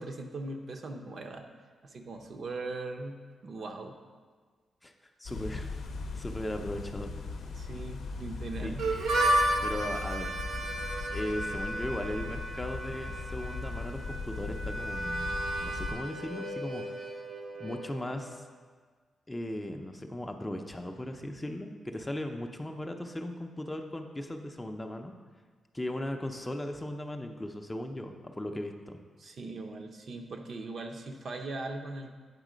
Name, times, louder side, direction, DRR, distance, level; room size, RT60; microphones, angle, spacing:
voice 1, 0.0-1.5 1.8-3.2 3.4-4.0 7.6-8.8 29.2-32.1, right 2 dB, 55° right, 4 dB, 0.6 m, -39 dB
sound 1, 5.2-15.9, left 3 dB, 85° left, 0.6 m, -39 dB
voice 2, 5.2-5.7 6.2-7.1 8.6-8.7 9.6-10.3 11.1-15.3 15.6-16.8 17.6-18.4 19.3-25.1 25.7-29.0, left 1 dB, 15° left, 4 dB, 0.5 m, -37 dB
Harmonica, 8.8-18.4, right 1 dB, 80° right, 0.9 m, -33 dB
8.2 x 3.6 x 5.0 m, 1.5 s
cardioid pair, 110°, 0 cm